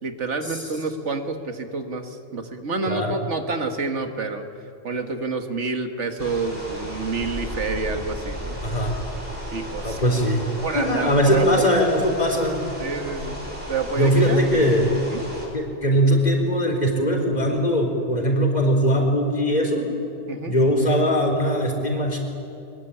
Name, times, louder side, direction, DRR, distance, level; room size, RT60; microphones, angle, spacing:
voice 1, 0.0-4.4 4.8-8.6 9.5-10.0 10.6-11.5 12.8-14.4 15.1-15.2 20.3-20.5, right 3 dB, 85° right, 7 dB, 2.0 m, -28 dB
sound 1, 6.2-15.5, equal, 55° right, 5.4 m, -34 dB
voice 2, 8.6-8.9 9.8-10.5 10.7-12.6 14.0-14.9 15.5-19.9 20.5-22.2, equal, 40° left, 2 dB, 4.1 m, -20 dB
22.0 x 21.5 x 10.0 m, 2.9 s
omnidirectional pair, 1.2 m